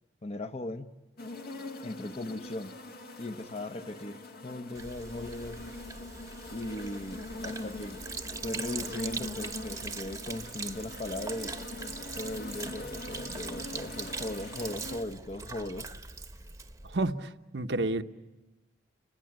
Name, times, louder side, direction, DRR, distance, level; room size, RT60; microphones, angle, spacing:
voice 1, 0.2-0.9 1.8-2.7 3.2-5.6 6.5-8.0 8.4-11.5 12.2-15.9, left 1 dB, 40° left, 9 dB, 1.1 m, -38 dB
sound 1, 1.2-15.0, left 2 dB, 60° left, 1.8 m, -43 dB
Sink (filling or washing), 4.7-17.1, right 4 dB, 20° right, 1.0 m, -41 dB
voice 2, 16.9-18.0, right 2 dB, 80° right, 7 dB, 1.1 m, -30 dB
29.5 x 20.5 x 8.9 m, 1.1 s
head